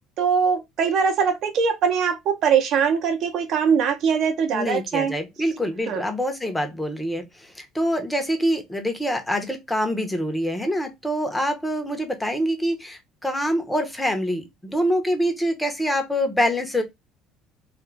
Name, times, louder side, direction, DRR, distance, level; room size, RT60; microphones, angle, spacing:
voice 1, 0.2-5.1 5.9-6.0, right 6 dB, 60° right, 0.7 m, -22 dB
voice 2, 4.5-16.8, equal, 10° left, 0.8 m, -25 dB
2.4 x 2.3 x 3.2 m
supercardioid pair, 105°, 0 cm